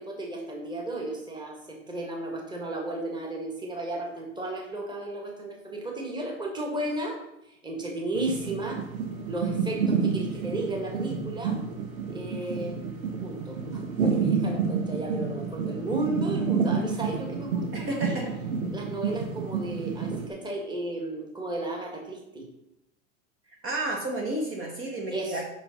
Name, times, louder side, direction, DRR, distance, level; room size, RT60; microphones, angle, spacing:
voice 1, 0.0-7.2 7.5-8.8 9.3-11.6 12.1-12.8 13.2-18.2 18.7-22.5 25.1-25.4, right 2 dB, 10° right, 0 dB, 1.9 m, -34 dB
sound 1, 8.1-20.3, right 5 dB, 85° right, 1.4 m, -29 dB
voice 2, 17.7-18.3 23.6-25.4, right 1 dB, 30° right, -1 dB, 1.5 m, -31 dB
6.0 x 5.7 x 5.4 m, 0.85 s
hypercardioid pair, 110°, 41 cm